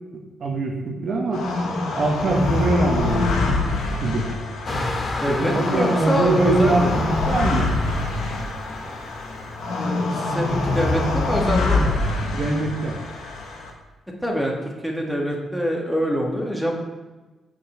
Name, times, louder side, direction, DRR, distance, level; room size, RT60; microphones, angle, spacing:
voice 1, 0.1-1.5 1.9-3.6 4.0-4.3 5.3-7.7 12.3-13.0, right 2 dB, 60° right, 1 dB, 1.2 m, -23 dB
sound 1, 1.3-13.7, left 2 dB, 80° left, 1.1 m, -25 dB
sound 2, 4.7-12.7, left 2 dB, 50° left, 1.3 m, -33 dB
voice 2, 5.2-6.9 9.8-11.9 14.2-16.8, equal, 5° left, -1 dB, 1.9 m, -25 dB
6.9 x 5.5 x 4.5 m, 1.2 s
hypercardioid pair, 45°, 0 cm